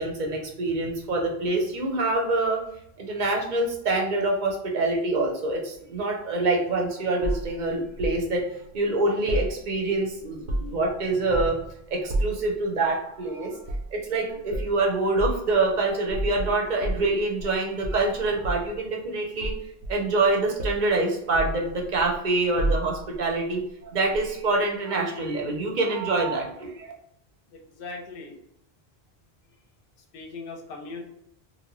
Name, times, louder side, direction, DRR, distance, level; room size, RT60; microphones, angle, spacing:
voice 1, 0.0-2.6 3.0-8.4 8.7-11.6 11.9-13.6 13.9-19.5 19.9-23.6 23.9-26.9, right 2 dB, 50° right, 0 dB, 0.7 m, -25 dB
sound 1, 7.2-8.2 9.3-10.0 10.3-10.9 11.3-11.7 12.1-12.5 13.6-13.9 14.5-14.7 15.2-15.4 16.1-17.5 17.8-18.8 19.4-20.3 20.6-20.9 21.3-22.2 22.6-23.2 24.1-24.3, right 1 dB, 85° right, 0.9 m, -30 dB
voice 2, 27.5-28.4 30.1-31.0, left 3 dB, 60° left, 1 dB, 0.7 m, -39 dB
2.7 x 2.1 x 2.9 m, 0.79 s
omnidirectional pair, 1.1 m